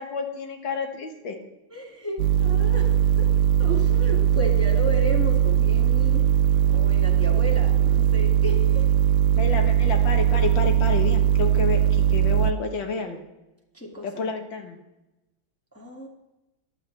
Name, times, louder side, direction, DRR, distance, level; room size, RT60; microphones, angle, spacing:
voice 1, 0.0-1.4 9.3-13.2 14.0-14.8, left 5 dB, 70° left, 5 dB, 2.0 m, -30 dB
voice 2, 1.7-3.3 3.6-6.2 6.6-8.9 13.7-14.1 15.7-16.1, equal, 5° left, -1 dB, 1.6 m, -33 dB
sound 1, 2.2-12.5, right 10 dB, 75° right, 1.3 m, -20 dB
14.5 x 11.0 x 3.3 m, 1.0 s
omnidirectional pair, 2.2 m